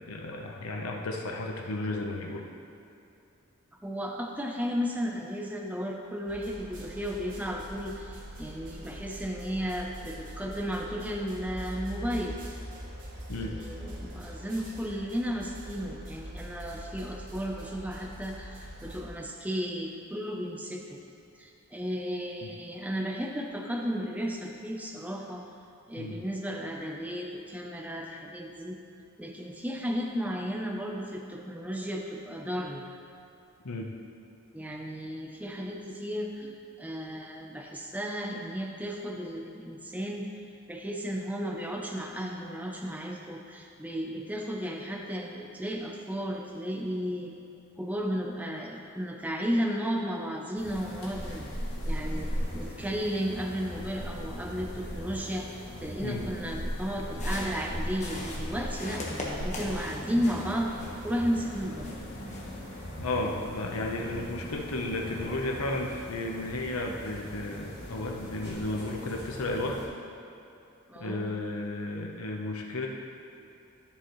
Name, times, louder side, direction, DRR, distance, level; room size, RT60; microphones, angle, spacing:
voice 1, 0.0-2.5 13.3-13.5 22.4-22.5 26.0-26.2 33.6-33.9 56.0-56.3 59.4-59.7 63.0-69.8 71.0-72.9, left 2 dB, 85° left, 1 dB, 0.9 m, -33 dB
voice 2, 3.8-12.4 13.4-21.0 21.4-25.5 25.9-28.8 29.2-32.8 34.5-40.3 40.7-47.3 47.8-51.4 51.9-52.3 52.5-60.8 61.0-61.9 70.9-71.3, equal, 5° right, 0 dB, 0.6 m, -34 dB
sound 1, 6.3-19.0, equal, 40° right, 1.4 m, -43 dB
sound 2, 50.6-69.9, equal, 50° left, 2.2 m, -38 dB
sound 3, 57.2-61.2 61.6-62.6, left 2 dB, 35° left, 1.3 m, -41 dB
12.5 x 7.3 x 3.1 m, 2.8 s
head